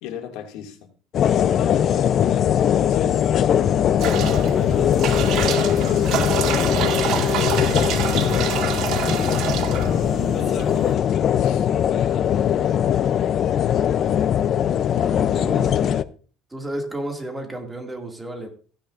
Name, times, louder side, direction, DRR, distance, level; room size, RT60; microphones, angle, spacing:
voice 1, 0.0-0.8 1.5-2.5 2.9-3.2 3.6-5.0 5.3-8.0 11.3-11.7, left 10 dB, 80° left, 3 dB, 2.2 m, -35 dB
sound 1, 1.1-16.0, left 9 dB, 45° left, 0.5 m, -20 dB
sound 2, 4.0-10.9, right 8 dB, 60° right, 1.5 m, -27 dB
voice 2, 15.0-16.0 16.5-18.5, right 1 dB, 10° right, 3 dB, 2.3 m, -32 dB
16.0 x 10.5 x 2.5 m, 0.39 s
cardioid pair, 130°, 0 cm